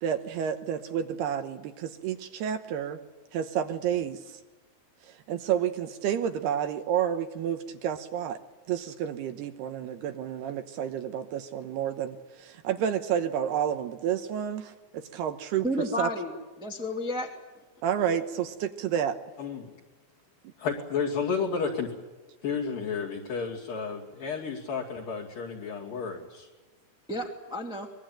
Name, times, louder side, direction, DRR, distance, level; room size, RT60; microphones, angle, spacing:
voice 1, 0.0-3.0 3.3-4.4 5.0-8.4 8.7-16.1 17.8-19.2, right 9 dB, 75° right, 8 dB, 2.8 m, -30 dB
voice 2, 15.6-17.3 27.1-27.9, left 1 dB, ahead, 0 dB, 1.4 m, -32 dB
voice 3, 19.4-19.7 20.6-21.9 22.4-26.5, left 5 dB, 55° left, -5 dB, 4.1 m, -32 dB
24.5 x 22.0 x 9.1 m, 1.2 s
omnidirectional pair, 5.2 m